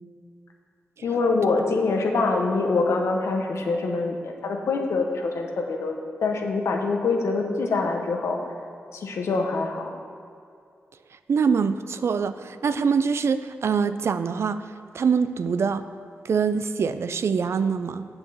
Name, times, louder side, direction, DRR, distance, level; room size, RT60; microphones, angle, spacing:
voice 1, 1.0-8.4 8.9-9.9, left 3 dB, 85° left, 2 dB, 1.0 m, -25 dB
voice 2, 11.3-14.7 14.9-15.8 16.2-18.1, right 6 dB, 70° right, 12 dB, 0.4 m, -24 dB
8.0 x 5.7 x 6.9 m, 2.4 s
cardioid pair, 50°, 5 cm